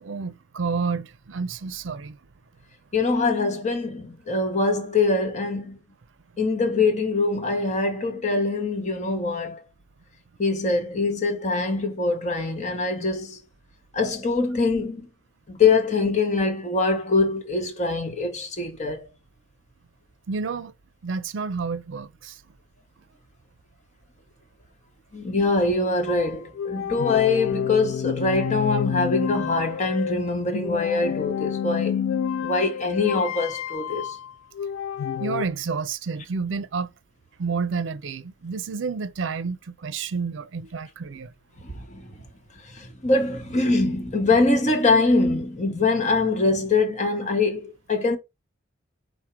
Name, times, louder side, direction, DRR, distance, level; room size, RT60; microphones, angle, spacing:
voice 1, 0.0-2.2 20.3-20.7 21.0-22.3 35.2-36.9 37.4-41.3, right 5 dB, 70° right, 0.5 m, -30 dB
voice 2, 2.9-5.8 6.4-9.6 10.4-13.4 13.9-15.1 15.5-19.1 25.1-32.0 32.4-34.2 41.6-42.1 42.7-48.2, left 3 dB, 40° left, 1.0 m, -23 dB
sound 1, 26.1-35.5, left 8 dB, 90° left, 0.3 m, -29 dB
4.9 x 2.1 x 4.3 m
head